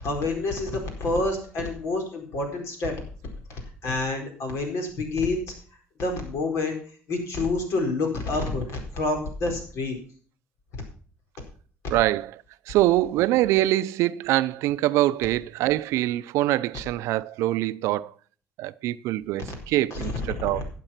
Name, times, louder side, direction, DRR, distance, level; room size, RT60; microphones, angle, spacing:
voice 1, 0.0-5.4 6.0-6.8 7.1-10.0 19.9-20.6, left 2 dB, 70° left, 4.4 m, -28 dB
voice 2, 11.9-12.3 12.7-18.1 18.6-20.7, right 15 dB, 80° right, 0.5 m, -24 dB
12.5 x 7.6 x 5.7 m
cardioid pair, 95°, 5 cm